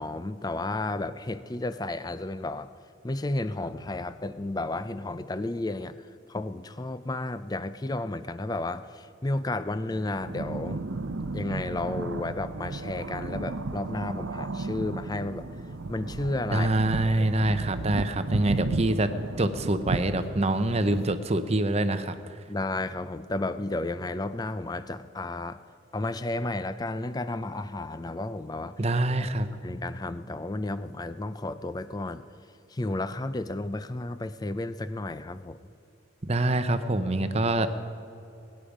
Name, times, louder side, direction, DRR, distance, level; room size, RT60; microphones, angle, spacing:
voice 1, 0.0-2.7 3.0-6.0 6.3-10.8 11.3-15.5 15.9-16.7 17.0-17.3 22.5-25.6 25.9-28.8 29.6-32.2 32.7-35.6, left 2 dB, 20° left, 13 dB, 0.4 m, -32 dB
sound 1, 10.2-21.1, right 3 dB, 80° right, 0.7 m, -34 dB
voice 2, 16.5-19.1 19.4-22.2 28.8-29.5 36.3-37.7, right 1 dB, 30° right, 10 dB, 0.7 m, -25 dB
22.0 x 10.5 x 5.0 m, 2.7 s
head